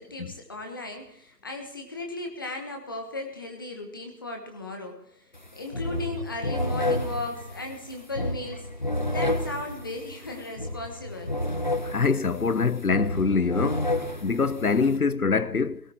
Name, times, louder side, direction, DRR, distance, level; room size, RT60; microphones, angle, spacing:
voice 1, 0.0-5.3 5.6-11.4, left 2 dB, 15° left, 1.3 m, -36 dB
sound 1, 5.3-5.5 5.7-15.0, left 1 dB, 30° left, 0.9 m, -30 dB
voice 2, 11.8-13.9 14.2-15.8, left 4 dB, 65° left, 1.1 m, -24 dB
17.5 x 17.5 x 4.5 m
figure-of-eight pair, 155°, 48 cm